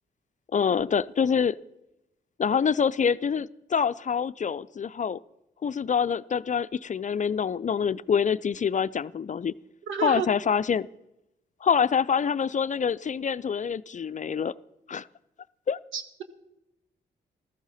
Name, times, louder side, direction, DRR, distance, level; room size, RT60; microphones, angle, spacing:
voice 1, 0.5-1.6 2.4-5.2 5.6-9.5 10.0-10.9 11.6-14.5 14.9-15.1 15.7-15.8, left 7 dB, 40° left, 16 dB, 0.5 m, -26 dB
voice 2, 9.9-10.3 15.9-16.2, right 6 dB, 80° right, 10 dB, 1.3 m, -30 dB
15.0 x 14.0 x 4.2 m, 0.88 s
supercardioid pair, 50°, 20 cm